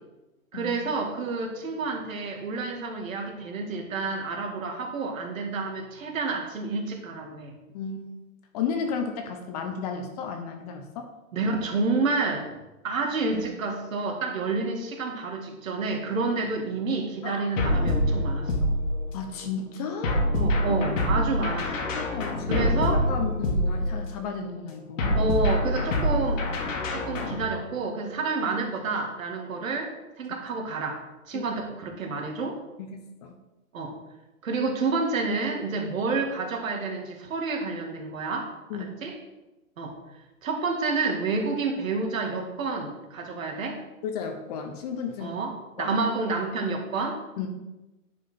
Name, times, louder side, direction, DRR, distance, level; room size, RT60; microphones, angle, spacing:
voice 1, 0.5-7.5 11.3-12.5 12.8-18.5 20.3-22.2 22.5-23.0 25.1-26.5 26.9-31.0 31.3-32.6 33.7-34.0 34.4-39.2 39.8-40.0 40.4-43.8 45.2-47.2, right 3 dB, 65° right, 3 dB, 1.9 m, -29 dB
voice 2, 8.5-11.1 17.2-17.5 19.1-20.2 21.9-22.7 23.1-25.2 31.3-31.4 32.8-33.3 38.7-38.9 44.0-45.4 45.8-46.0 47.4-47.5, left 6 dB, 25° left, 5 dB, 0.8 m, -33 dB
sound 1, 17.6-19.3 20.0-24.2 25.0-27.5, left 1 dB, 60° left, 1.9 m, -26 dB
9.8 x 5.0 x 4.2 m, 1.0 s
hypercardioid pair, 145°, 43 cm